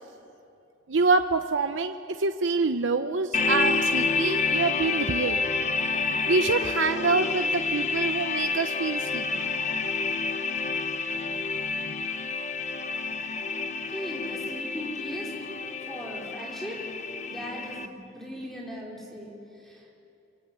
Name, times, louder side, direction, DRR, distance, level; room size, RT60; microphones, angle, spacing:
voice 1, 0.9-5.4 6.3-9.2, right 3 dB, 65° right, 7 dB, 0.8 m, -26 dB
sound 1, 3.3-17.9, left 4 dB, 35° left, 1.0 m, -29 dB
voice 2, 13.9-15.3 15.9-16.8 17.2-19.4 19.6-19.9, equal, ahead, -3 dB, 4.8 m, -38 dB
28.5 x 23.5 x 8.4 m, 2.7 s
head